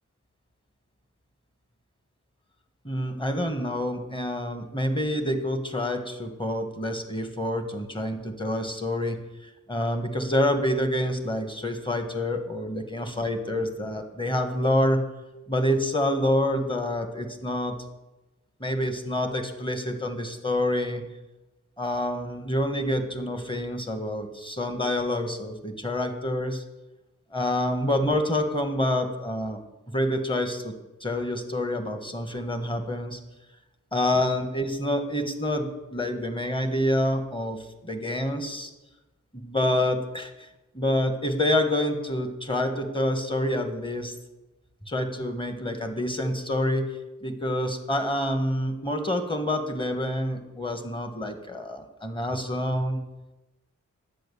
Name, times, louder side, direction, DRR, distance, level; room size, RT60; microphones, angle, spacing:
voice 1, 2.8-9.2 9.7-15.0 15.5-17.7 18.6-21.0 21.8-26.6 27.3-29.6 29.9-30.7 31.0-33.2 33.9-38.7 39.3-40.5 40.7-44.1 44.9-46.8 47.2-53.0, left 1 dB, 15° left, 6 dB, 1.5 m, -27 dB
10.5 x 8.3 x 7.0 m, 1.1 s
wide cardioid pair, 95°, 29 cm